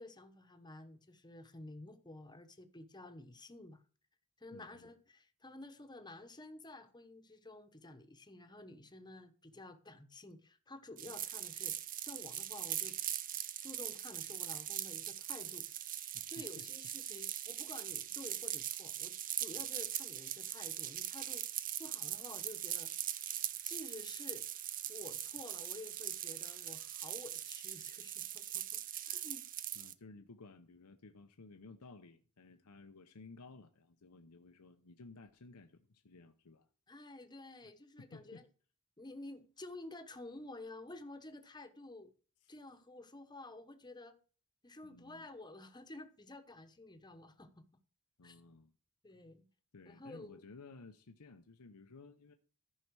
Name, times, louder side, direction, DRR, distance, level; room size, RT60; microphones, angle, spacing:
voice 1, 0.0-3.8 4.4-13.0 13.6-15.7 16.3-21.5 21.8-22.9 23.6-24.5 24.9-29.5 36.9-38.4 39.0-42.1 42.5-44.2 44.6-47.5 48.2-48.4 49.0-49.5 49.9-50.4, left 2 dB, 20° left, 1.0 m, -51 dB
voice 2, 4.5-4.9 11.0-11.1 16.1-16.7 17.9-18.2 19.6-19.7 29.7-36.7 38.0-38.4 42.4-42.5 44.8-45.3 48.2-48.7 49.7-52.3, left 3 dB, 90° left, 0.8 m, -56 dB
sound 1, 11.0-29.9, right 12 dB, 40° right, 0.6 m, -41 dB
14.0 x 5.7 x 4.7 m
head